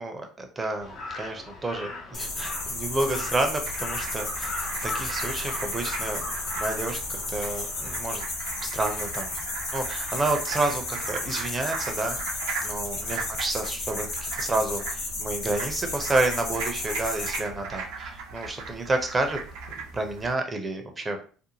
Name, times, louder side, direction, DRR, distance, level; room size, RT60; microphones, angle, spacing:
voice 1, 0.0-4.5 4.8-6.2 6.6-8.2 8.6-9.3 9.7-12.2 12.6-19.4 19.9-21.2, right 2 dB, 25° right, 4 dB, 0.6 m, -30 dB
Crow, 0.8-8.2, left 2 dB, 50° left, 1.0 m, -39 dB
sound 1, 2.1-17.4, left 2 dB, 75° left, 0.9 m, -33 dB
sound 2, 3.7-20.3, right 4 dB, 70° right, 0.5 m, -38 dB
2.6 x 2.1 x 2.9 m, 0.40 s
hypercardioid pair, 60°, 0 cm